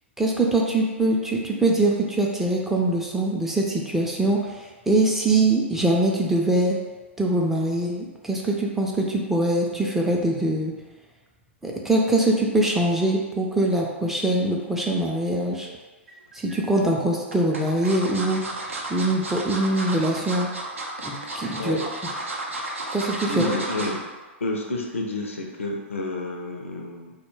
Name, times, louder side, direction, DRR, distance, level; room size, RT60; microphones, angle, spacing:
voice 1, 0.2-4.5 4.9-6.8 7.2-10.7 11.6-15.7 16.3-18.4 18.9-20.5 21.0-21.8 22.9-23.4, right 2 dB, 5° right, -2 dB, 0.3 m, -23 dB
sound 1, 16.1-16.6 17.3-24.0 24.4-24.6 24.9-25.0, right 2 dB, 85° right, 0.4 m, -33 dB
voice 2, 23.3-24.1 24.4-27.1, left 2 dB, 85° left, 1 dB, 0.4 m, -29 dB
2.1 x 2.1 x 3.1 m, 1.3 s
hypercardioid pair, 110°, 7 cm